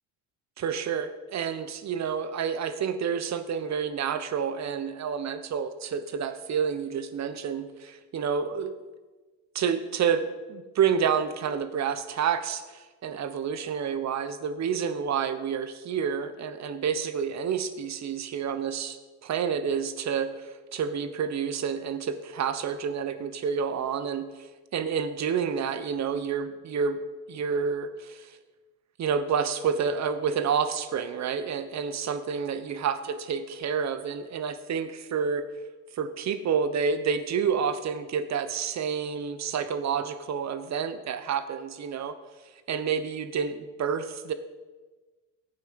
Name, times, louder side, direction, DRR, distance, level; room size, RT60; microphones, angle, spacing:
voice 1, 0.6-8.7 9.5-27.0 27.3-28.4 29.0-35.5 35.9-42.2 42.7-44.3, right 7 dB, 45° right, 11 dB, 1.1 m, -29 dB
12.0 x 8.8 x 5.3 m, 1.3 s
supercardioid pair, 85°, 38 cm